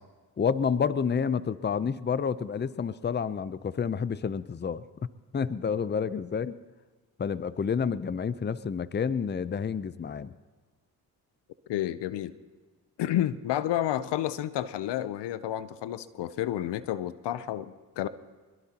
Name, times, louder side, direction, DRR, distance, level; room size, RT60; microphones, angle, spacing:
voice 1, 0.4-4.8 5.3-6.5 7.2-10.3, left 6 dB, 25° left, 16 dB, 0.6 m, -29 dB
voice 2, 11.7-12.3 13.0-18.1, left 12 dB, 80° left, 15 dB, 0.7 m, -30 dB
22.5 x 22.0 x 2.9 m, 1.3 s
supercardioid pair, 55°, 41 cm